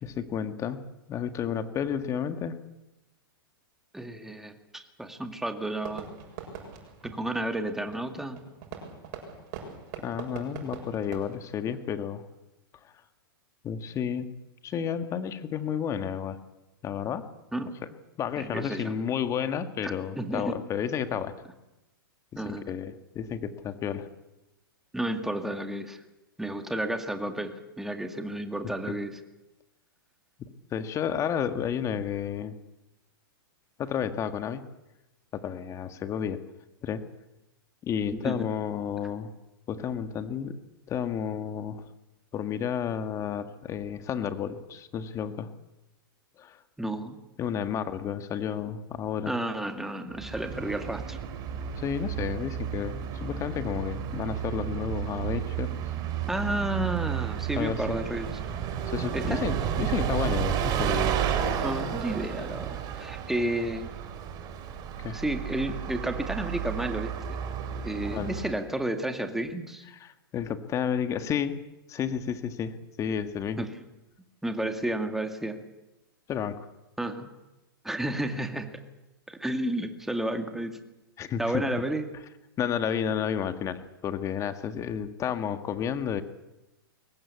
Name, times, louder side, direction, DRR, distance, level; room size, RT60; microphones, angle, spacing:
voice 1, 0.0-0.8 1.1-2.6 10.0-12.2 12.8-12.9 13.6-14.3 14.6-16.4 16.8-17.3 18.2-21.3 22.3-24.1 30.7-32.5 33.8-34.6 35.3-36.4 36.8-37.0 37.8-39.3 39.7-40.6 40.9-41.8 42.3-45.5 46.4-46.6 47.4-49.3 51.8-55.7 57.6-58.0 58.9-61.2 65.0-65.2 68.0-68.3 70.0-71.6 71.9-73.7 76.3-76.7 81.2-81.6 82.6-86.2, left 8 dB, 25° left, 9 dB, 1.8 m, -31 dB
voice 2, 3.9-6.1 7.0-8.4 17.5-17.7 18.4-18.9 19.8-20.5 22.4-22.7 24.9-26.0 26.4-29.2 38.1-38.4 46.8-47.2 49.3-51.2 56.3-58.3 59.1-59.5 61.6-63.9 65.1-67.4 67.8-69.8 73.6-73.7 74.4-75.6 77.0-77.3 77.8-78.8 79.3-80.8 81.4-82.1, right 1 dB, 5° right, 6 dB, 2.2 m, -32 dB
Fireworks, 5.8-12.3, right 6 dB, 50° right, 7.3 m, -43 dB
Bus, 50.1-68.7, right 9 dB, 35° right, 3.6 m, -32 dB
23.0 x 19.0 x 8.5 m, 1.0 s
hypercardioid pair, 125°, 12 cm